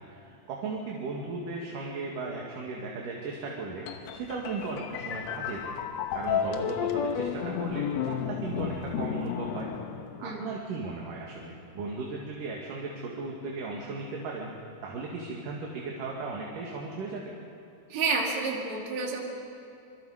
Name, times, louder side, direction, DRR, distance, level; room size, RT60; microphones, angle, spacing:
voice 1, 0.0-3.9 4.1-5.8 6.1-9.7 10.2-14.5 14.8-17.3, right 3 dB, 75° right, -2 dB, 3.5 m, -36 dB
sound 1, 3.9-10.6, left 7 dB, 65° left, 2.0 m, -32 dB
voice 2, 17.9-19.2, right 4 dB, 55° right, -1 dB, 3.8 m, -29 dB
26.0 x 24.5 x 5.0 m, 2.7 s
omnidirectional pair, 3.8 m